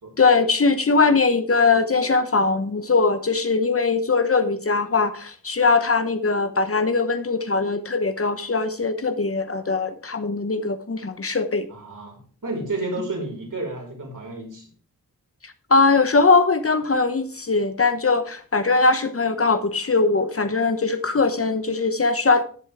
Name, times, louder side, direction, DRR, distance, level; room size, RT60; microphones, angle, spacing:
voice 1, 0.2-11.7 15.4-22.4, left 4 dB, 40° left, 10 dB, 0.9 m, -21 dB
voice 2, 11.7-14.7, right 2 dB, 60° right, -1 dB, 5.2 m, -31 dB
12.5 x 7.8 x 3.5 m, 0.43 s
cardioid pair, 65°, 36 cm